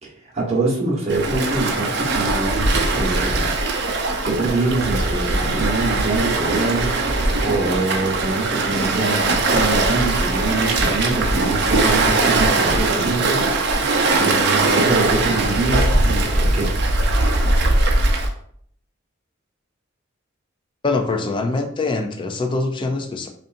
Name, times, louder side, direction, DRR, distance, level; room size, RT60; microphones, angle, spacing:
voice 1, 0.0-3.6 4.2-6.9 7.4-13.4 14.2-16.7, right 2 dB, 30° right, -4 dB, 1.1 m, -24 dB
Waves surf, 1.1-18.3, right 2 dB, 55° right, 0.6 m, -20 dB
voice 2, 20.8-23.3, left 3 dB, 25° left, 5 dB, 0.3 m, -23 dB
5.3 x 2.5 x 2.5 m, 0.65 s
head